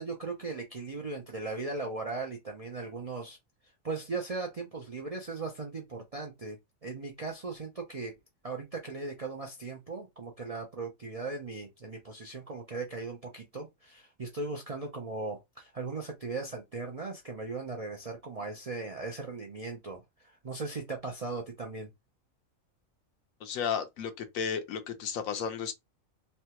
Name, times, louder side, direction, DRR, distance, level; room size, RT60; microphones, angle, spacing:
voice 1, 0.0-3.4 3.8-8.1 8.4-21.9, right 3 dB, 55° right, 0.4 m, -38 dB
voice 2, 23.4-25.7, left 7 dB, 80° left, 1.1 m, -33 dB
3.2 x 2.2 x 2.9 m
omnidirectional pair, 1.4 m